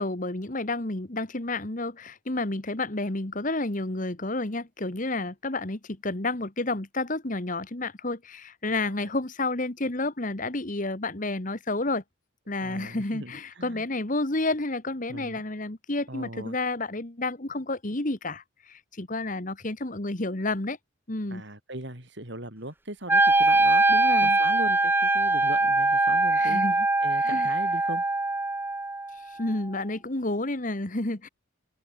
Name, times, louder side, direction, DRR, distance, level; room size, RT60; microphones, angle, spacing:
voice 1, 0.0-12.0 12.5-20.8 21.1-21.4 23.9-24.4 26.3-26.9 27.2-27.5 29.4-31.3, left 2 dB, 40° left, 1.6 m, -30 dB
voice 2, 12.6-13.9 15.1-15.4 16.1-16.6 21.3-26.6 27.0-28.0, right 1 dB, 55° right, 6.6 m, -39 dB
Wind instrument woodwind instrument, 23.1-29.2, right 2 dB, 10° right, 0.7 m, -22 dB
open air
head